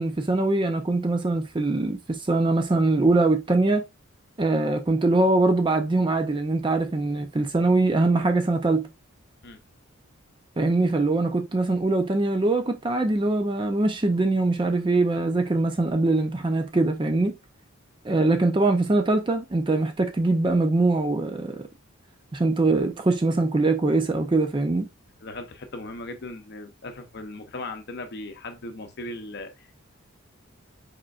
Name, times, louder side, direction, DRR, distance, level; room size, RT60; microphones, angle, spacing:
voice 1, 0.0-3.8 4.4-8.9 10.6-17.4 18.0-21.7 22.3-24.9, right 2 dB, 20° right, 0.4 m, -22 dB
voice 2, 25.2-29.7, left 2 dB, 50° left, 0.6 m, -38 dB
5.0 x 4.3 x 2.4 m
head